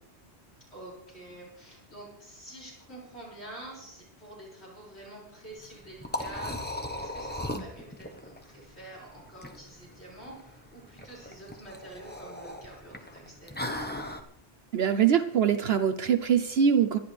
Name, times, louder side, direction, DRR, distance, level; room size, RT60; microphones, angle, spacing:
voice 1, 0.7-13.8, right 1 dB, 70° left, -6 dB, 6.0 m, -47 dB
Liquid, 5.5-14.2, left 1 dB, 10° left, 1.1 m, -38 dB
voice 2, 14.7-17.0, right 8 dB, 65° right, 10 dB, 0.9 m, -23 dB
27.0 x 12.0 x 3.4 m, 0.78 s
omnidirectional pair, 1.1 m